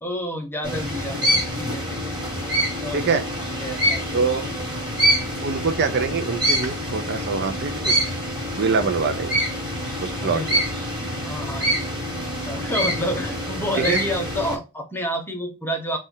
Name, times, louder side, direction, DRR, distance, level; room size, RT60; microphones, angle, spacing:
voice 1, 0.0-2.1 2.8-3.2 3.6-4.2 10.2-10.5 11.2-12.0 12.4-16.0, equal, 10° left, 0.8 m, -29 dB
sound 1, 0.6-14.6, equal, 20° right, 1.6 m, -26 dB
voice 2, 2.9-3.2 4.1-4.4 5.4-8.0 8.6-9.3 10.0-10.6 13.9-14.0, right 4 dB, 50° right, 0.5 m, -24 dB
4.2 x 2.4 x 3.8 m
head